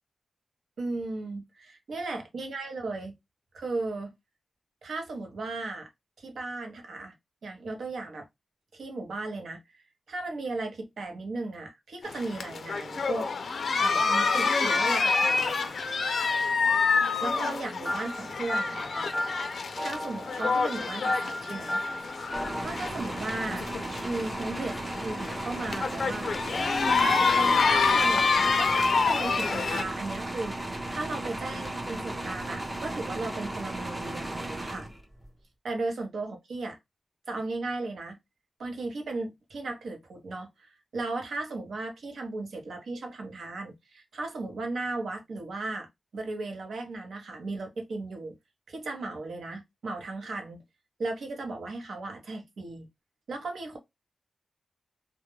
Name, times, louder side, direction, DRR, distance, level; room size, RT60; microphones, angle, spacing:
voice 1, 0.8-3.1 3.5-4.1 4.8-5.9 6.2-7.1 7.4-8.3 8.7-13.3 13.8-15.8 17.2-19.2 19.8-21.8 22.6-23.7 24.0-26.4 26.8-34.9 35.6-36.8 37.3-38.2 38.6-45.9 46.1-48.4 48.7-50.6 51.0-52.9 53.3-53.8, right 3 dB, 80° right, 0.7 m, -36 dB
sound 1, 12.0-29.8, left 4 dB, 60° left, 0.4 m, -27 dB
sound 2, 17.9-22.6, left 1 dB, ahead, 0.8 m, -34 dB
sound 3, 22.3-35.3, right 1 dB, 15° right, 0.5 m, -36 dB
2.2 x 2.1 x 3.0 m
wide cardioid pair, 155°, 0 cm